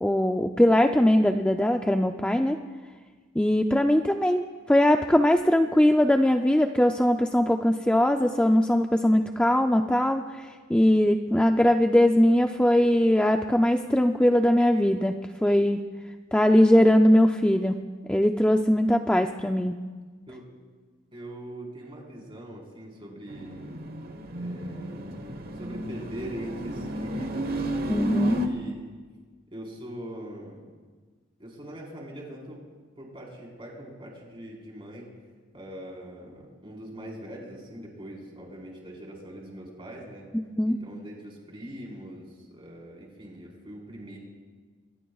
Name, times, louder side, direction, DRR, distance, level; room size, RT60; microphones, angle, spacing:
voice 1, 0.0-2.6 3.4-15.8 16.3-17.8 18.1-19.8 27.9-28.4 40.6-40.8, left 1 dB, 5° left, 4 dB, 0.4 m, -21 dB
voice 2, 21.1-23.6 24.3-25.2 25.5-27.9 28.2-28.9 29.5-30.7 31.4-32.6 33.0-35.1 35.5-40.3 40.7-44.2, right 1 dB, 25° right, -2 dB, 4.3 m, -42 dB
sound 1, 23.3-28.5, right 1 dB, 50° right, 1.2 m, -33 dB
24.5 x 21.0 x 2.4 m, 1.4 s
head